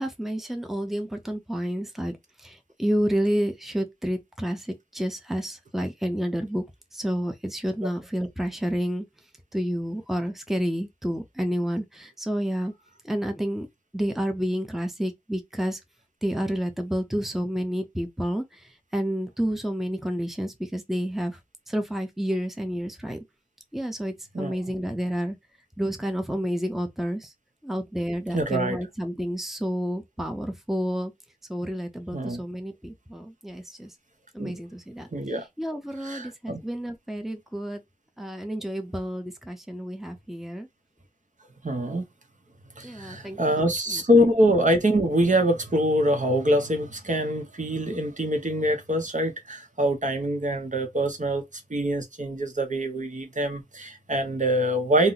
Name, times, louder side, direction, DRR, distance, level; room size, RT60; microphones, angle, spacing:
voice 1, 0.0-6.6 6.9-9.1 9.5-12.7 13.0-13.7 13.9-15.8 16.2-21.4 21.7-23.2 23.7-25.4 25.8-27.3 27.6-31.1 31.5-33.9 34.3-35.1 35.6-37.8 38.2-40.7 42.8-44.0, equal, ahead, 0.6 m, -30 dB
voice 2, 28.3-28.8 32.1-32.4 34.4-34.6 35.1-35.5 36.0-36.6 41.6-42.1 42.8-55.1, equal, 60° right, 0.8 m, -24 dB
2.7 x 2.0 x 3.9 m
wide cardioid pair, 50°, 15 cm